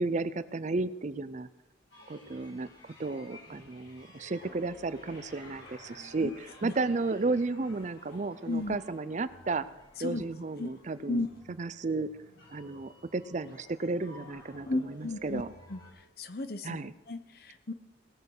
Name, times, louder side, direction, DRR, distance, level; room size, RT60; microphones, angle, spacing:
voice 1, 0.0-1.5 2.1-9.7 10.0-11.2 11.6-12.1 12.5-15.5 16.6-16.9, right 3 dB, 40° right, 15 dB, 0.5 m, -33 dB
sound 1, 1.9-15.9, left 1 dB, 70° left, 5.7 m, -53 dB
voice 2, 14.6-15.4 15.7-15.8 16.2-16.8 17.1-17.7, left 2 dB, 55° left, 11 dB, 0.9 m, -34 dB
18.5 x 6.6 x 6.6 m, 1.0 s
head